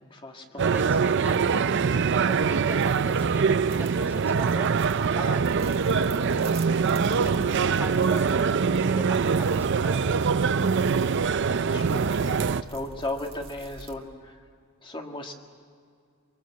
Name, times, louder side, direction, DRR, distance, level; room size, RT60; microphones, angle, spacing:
voice 1, 0.0-0.8 5.1-5.4 10.5-10.9 11.7-14.4 14.8-15.3, left 1 dB, 25° left, 2 dB, 1.8 m, -37 dB
voice 2, 0.5-1.6 2.0-4.7 5.2-6.6 7.1-10.1, right 1 dB, 10° right, 1 dB, 1.6 m, -40 dB
sound 1, 0.6-12.6, right 5 dB, 55° right, 0.5 m, -23 dB
sound 2, 2.2-14.0, right 4 dB, 25° right, 1.9 m, -49 dB
24.5 x 24.5 x 7.6 m, 2.3 s
head